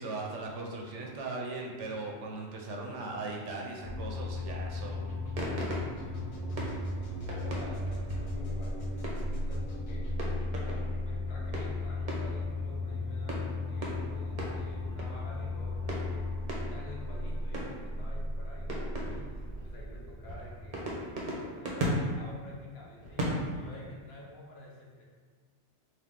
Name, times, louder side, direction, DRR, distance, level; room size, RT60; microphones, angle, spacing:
voice 1, 0.0-5.0, right 3 dB, 75° right, -1 dB, 1.0 m, -38 dB
sound 1, 3.8-21.6, left 2 dB, 40° left, 0.5 m, -36 dB
sound 2, 5.4-9.5 10.1-11.0 11.4-12.7 13.3-15.3 15.9-17.1 17.5-18.0 18.7-19.7 20.3-23.9, equal, 40° right, 0.8 m, -37 dB
voice 2, 6.4-10.1 10.7-20.9 21.4-25.0, left 1 dB, 60° left, -3 dB, 0.9 m, -49 dB
3.9 x 2.6 x 3.5 m, 1.5 s
omnidirectional pair, 1.3 m